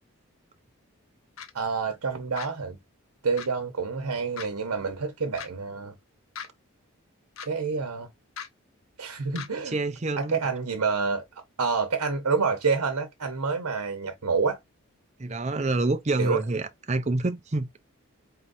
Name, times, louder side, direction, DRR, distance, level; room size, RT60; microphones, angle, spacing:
sound 1, 1.4-1.5 2.4-2.5 3.4-3.5 4.4-4.5 5.4-5.5 6.4-6.5 7.4-7.5 8.4-8.5 9.4-9.5, left 7 dB, 70° left, 0.7 m, -38 dB
voice 1, 1.5-2.8 3.2-5.9 7.4-8.1 9.0-9.8 10.2-11.2 11.6-14.6 16.2-16.4, right 5 dB, 85° right, 0.9 m, -28 dB
voice 2, 9.7-10.4 15.2-17.7, right 2 dB, 30° right, 0.5 m, -27 dB
4.3 x 4.0 x 2.6 m
head